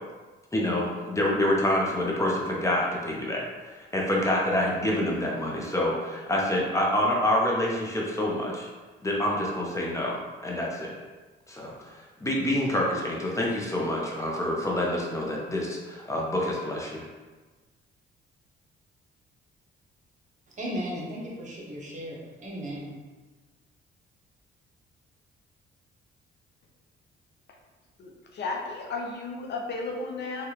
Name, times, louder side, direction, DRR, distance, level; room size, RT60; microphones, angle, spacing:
voice 1, 0.5-3.4 3.9-8.7 9.0-10.2 10.4-10.9 11.5-17.0, left 1 dB, 15° left, -3 dB, 0.7 m, -27 dB
voice 2, 20.5-23.0, equal, 40° right, -3 dB, 0.8 m, -36 dB
voice 3, 28.0-30.5, left 3 dB, 60° left, 0 dB, 0.6 m, -34 dB
3.3 x 2.4 x 2.9 m, 1.3 s
cardioid pair, 90°, 20 cm